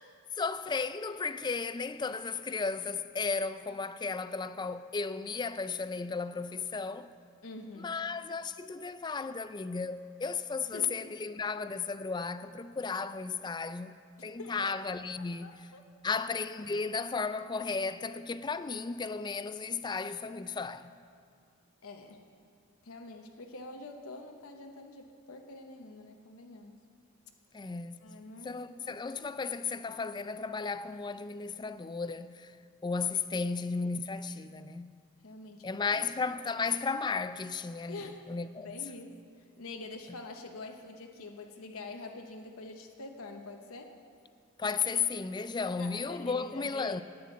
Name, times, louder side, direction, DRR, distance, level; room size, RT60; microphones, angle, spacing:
voice 1, 0.4-7.1 7.8-15.7 16.0-20.9 27.5-28.1 28.4-32.6 32.8-35.0 35.6-38.7 44.6-47.0, left 4 dB, 20° left, 0.3 m, -34 dB
voice 2, 7.4-8.0 10.7-10.9 14.2-14.7 15.4-15.9 21.8-22.2 22.8-26.8 28.0-28.6 35.2-35.7 36.0-36.1 37.9-38.2 38.6-44.0 45.8-47.0, left 3 dB, 85° left, 1.0 m, -46 dB
11.0 x 9.6 x 8.4 m
head